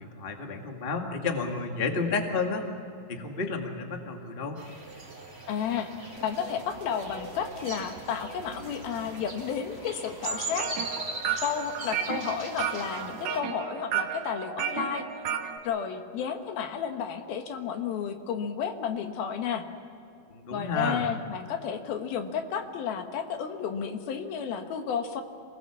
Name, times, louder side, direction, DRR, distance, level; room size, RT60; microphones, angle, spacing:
voice 1, 0.0-2.6 3.1-4.6 20.3-21.0, left 4 dB, 25° left, 3 dB, 1.2 m, -31 dB
sound 1, 4.6-13.4, right 2 dB, 20° right, 4.5 m, -40 dB
voice 2, 5.5-5.9 6.2-10.7 11.4-15.1 15.6-19.7 20.5-25.2, left 7 dB, 80° left, 6 dB, 3.2 m, -32 dB
sound 2, 6.2-10.5, right 3 dB, 85° right, 3.9 m, -49 dB
sound 3, 10.3-15.6, right 8 dB, 65° right, 2.5 m, -33 dB
27.0 x 19.0 x 7.3 m, 2.6 s
omnidirectional pair, 4.3 m